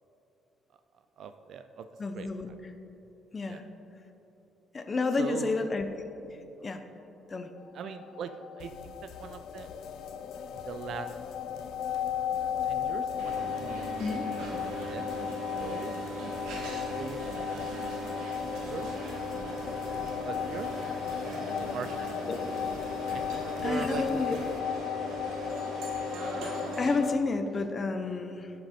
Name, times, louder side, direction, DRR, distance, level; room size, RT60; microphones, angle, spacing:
voice 1, 1.2-1.9 2.1-2.3 3.5-3.6 5.2-5.6 7.7-9.7 10.5-11.1 12.6-14.0 14.9-15.0 15.6-15.9 16.6-17.8 18.4-18.9 19.7-20.0 20.2-20.7 21.2-22.1 23.1-24.0, right 7 dB, 55° right, 9 dB, 0.4 m, -41 dB
voice 2, 2.0-2.5 3.3-3.6 4.7-5.9 6.6-6.8 7.3-7.5 14.0-14.3 22.3-22.4 23.6-24.4 26.8-28.5, left 3 dB, 25° left, 7 dB, 0.7 m, -30 dB
sound 1, 7.7-27.2, left 8 dB, 55° left, 0.3 m, -35 dB
sound 2, 8.6-24.6, left 5 dB, 80° left, 0.7 m, -51 dB
sound 3, 13.2-27.0, right 3 dB, 85° right, 2.0 m, -40 dB
16.5 x 6.3 x 4.3 m, 3.0 s
cardioid pair, 165°, 0 cm